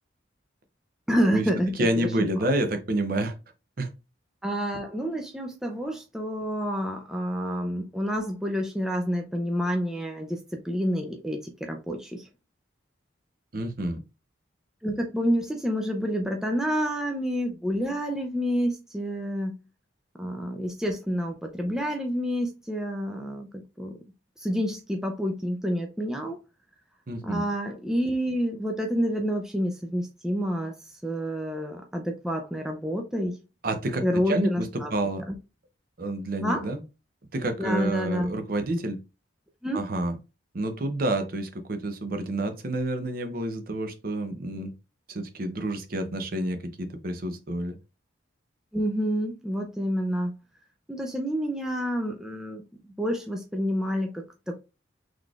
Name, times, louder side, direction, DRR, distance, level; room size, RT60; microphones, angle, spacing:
voice 1, 1.1-2.1 4.4-12.3 14.8-19.5 20.2-24.0 24.4-26.4 27.2-33.4 34.0-34.9 35.3-35.4 36.4-36.7 37.6-38.3 39.6-39.8 48.7-50.3 50.9-54.6, equal, 5° right, 0.4 m, -28 dB
voice 2, 1.8-3.4 3.8-3.9 13.5-14.0 27.1-27.4 33.6-35.2 36.0-36.8 37.3-39.0 39.7-40.1 40.5-44.7 45.1-47.7, right 1 dB, 45° right, 0.6 m, -29 dB
3.9 x 3.1 x 2.3 m
head